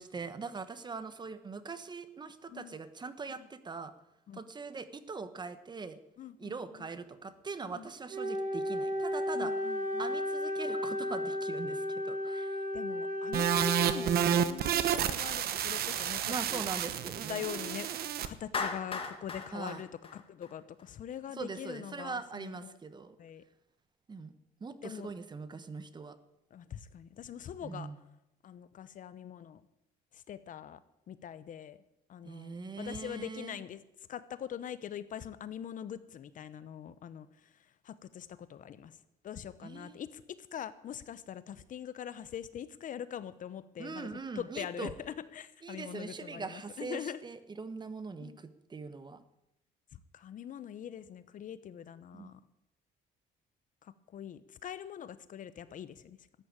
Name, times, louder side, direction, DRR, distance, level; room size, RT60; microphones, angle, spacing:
voice 1, 0.0-3.9 4.3-6.0 6.4-9.5 10.0-12.7 16.3-17.4 19.5-19.8 21.3-23.2 24.1-24.3 24.6-26.2 27.6-28.0 32.2-33.6 39.6-40.0 43.8-44.9 45.6-49.2 52.1-52.3, right 4 dB, 25° right, 12 dB, 1.2 m, -42 dB
voice 2, 6.2-6.6 7.7-7.9 9.3-10.1 12.7-16.6 17.3-22.8 23.2-23.4 24.8-25.1 26.5-27.9 28.4-29.6 30.1-30.8 31.1-31.8 32.1-33.8 34.1-37.3 37.8-38.9 39.2-40.2 40.5-44.1 44.3-47.2 48.2-48.4 49.9-52.4 53.8-56.2, left 9 dB, 50° left, 15 dB, 0.9 m, -43 dB
Wind instrument woodwind instrument, 8.1-14.5, left 1 dB, 50° right, 4.3 m, -34 dB
sound 1, 13.3-18.3, right 9 dB, 65° right, 1.1 m, -30 dB
Clapping, 18.5-20.8, left 4 dB, 35° left, 2.1 m, -37 dB
14.0 x 9.6 x 8.9 m, 0.86 s
cardioid pair, 110°, 17 cm